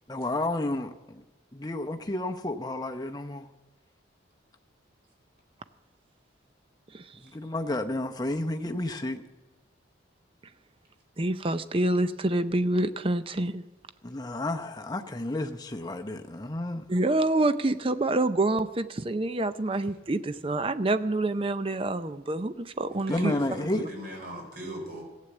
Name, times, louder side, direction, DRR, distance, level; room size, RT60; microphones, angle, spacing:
voice 1, 0.1-1.2 1.5-3.5 7.2-9.2 14.0-16.8 23.1-23.9, left 1 dB, 20° left, 0.8 m, -31 dB
voice 2, 11.2-13.6 16.9-23.3, right 2 dB, 30° right, 0.5 m, -27 dB
voice 3, 22.9-25.0, equal, 55° right, 4.6 m, -39 dB
14.5 x 8.4 x 7.8 m
head